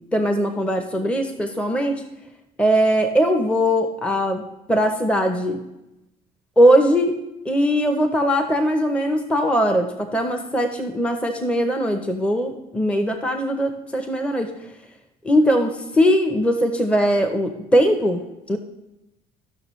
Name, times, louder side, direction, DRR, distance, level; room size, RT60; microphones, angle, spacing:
voice 1, 0.1-2.0 2.6-4.4 4.7-5.6 6.6-7.1 7.5-14.5 15.2-18.2 18.5-18.6, equal, 5° left, 6 dB, 0.7 m, -20 dB
14.0 x 6.1 x 3.1 m, 0.94 s
cardioid pair, 110°, 17 cm